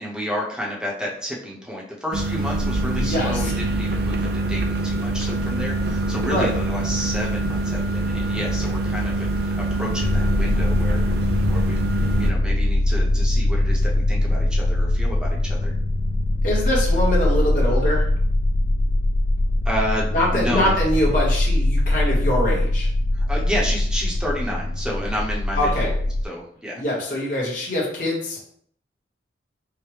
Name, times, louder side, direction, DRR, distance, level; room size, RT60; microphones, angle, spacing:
voice 1, 0.0-15.7 19.6-20.7 23.1-25.9 26.2-26.8, equal, 5° right, -4 dB, 0.8 m, -31 dB
sound 1, 2.1-12.3, right 2 dB, 60° right, 0.4 m, -24 dB
voice 2, 2.9-3.5 6.1-6.5 10.5-10.6 16.4-18.1 20.1-22.9 25.6-25.9 26.7-28.4, left 1 dB, 50° left, -4 dB, 1.1 m, -24 dB
sound 2, 10.0-26.3, left 1 dB, 75° left, 0.4 m, -22 dB
4.8 x 2.2 x 3.2 m, 0.62 s
head